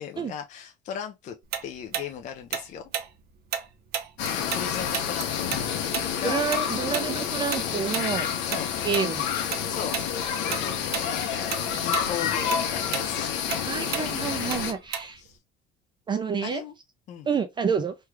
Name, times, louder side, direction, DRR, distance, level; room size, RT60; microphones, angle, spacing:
voice 1, 0.0-1.4 1.6-2.8 4.3-5.5 6.2-6.4 6.9-7.0 8.4-8.7 9.7-13.4 15.2-15.4 16.4-16.7 17.1-17.3, left 8 dB, 40° left, 0.4 m, -37 dB
Tick-tock, 1.5-4.7 4.9-9.6 9.9-10.1 10.5-11.1 11.4-15.3, right 8 dB, 60° right, 0.6 m, -33 dB
sound 1, 4.2-14.7, left 8 dB, 85° left, 0.9 m, -29 dB
voice 2, 6.2-8.3 8.8-9.3 13.6-15.2 16.1-16.6 17.3-17.9, right 6 dB, 25° right, 0.4 m, -28 dB
3.2 x 2.3 x 3.2 m
cardioid pair, 135°, 18 cm